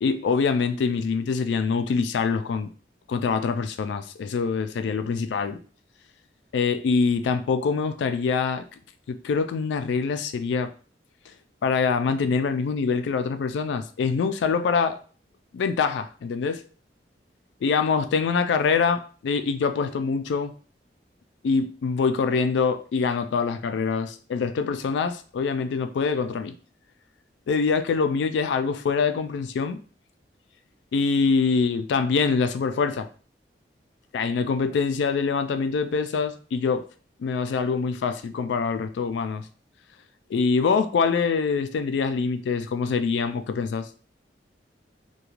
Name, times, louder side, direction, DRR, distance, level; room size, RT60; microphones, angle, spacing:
voice 1, 0.0-2.7 3.1-5.6 6.5-8.6 9.1-10.7 11.6-15.0 15.5-16.6 17.6-20.5 21.4-26.5 27.5-29.8 30.9-33.1 34.1-36.9 37.2-39.4 40.3-43.9, left 5 dB, 85° left, 9 dB, 0.3 m, -24 dB
2.4 x 2.2 x 3.0 m, 0.40 s
head